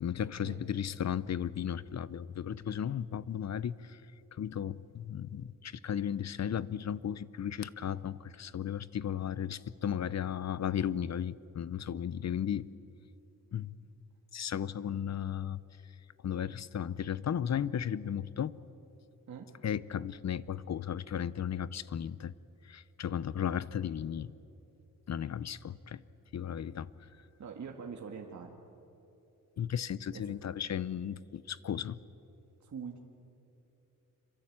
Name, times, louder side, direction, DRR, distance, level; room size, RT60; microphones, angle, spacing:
voice 1, 0.0-4.0 4.3-12.7 13.5-13.7 14.3-15.6 16.2-18.6 19.6-22.3 22.6-24.3 25.1-26.0 26.3-26.9 29.6-32.0, left 9 dB, 50° left, 18 dB, 0.7 m, -35 dB
voice 2, 27.4-28.6 30.1-30.3 32.6-33.0, right 6 dB, 55° right, 1 dB, 2.0 m, -44 dB
26.5 x 23.5 x 8.8 m, 2.9 s
cardioid pair, 110°, 34 cm